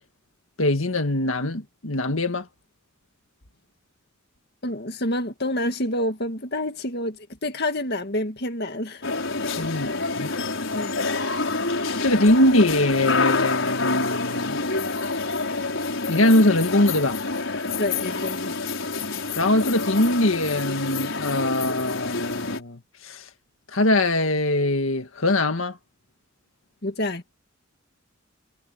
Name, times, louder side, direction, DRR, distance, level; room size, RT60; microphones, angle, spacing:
voice 1, 0.6-2.5 9.4-10.3 12.0-14.6 16.1-17.2 19.4-23.3 23.7-25.8, left 1 dB, 85° left, 1.9 m, -22 dB
voice 2, 4.6-9.0 10.7-11.0 17.8-18.6 26.8-27.2, left 1 dB, 50° left, 2.1 m, -28 dB
sound 1, 9.0-22.6, left 3 dB, 70° left, 5.7 m, -27 dB
head